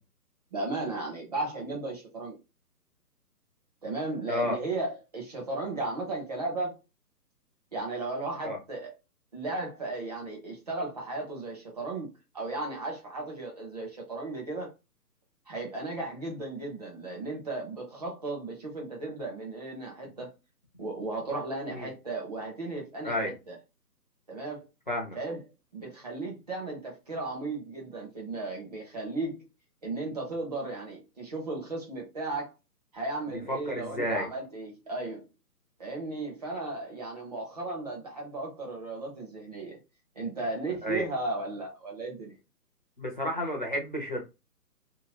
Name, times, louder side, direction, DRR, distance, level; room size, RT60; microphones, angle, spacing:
voice 1, 0.5-2.3 3.8-6.8 7.7-8.9 9.3-12.1 12.3-14.7 15.5-20.3 20.8-23.6 24.3-24.7 25.1-25.4 25.7-29.5 29.8-32.5 32.9-35.3 35.8-39.8 40.2-42.3, right 2 dB, 25° right, 0.8 m, -35 dB
voice 2, 24.9-25.2 33.5-34.3 40.8-41.0 43.0-44.2, equal, 30° left, 0.5 m, -31 dB
2.8 x 2.6 x 2.9 m
figure-of-eight pair, 140°, 49 cm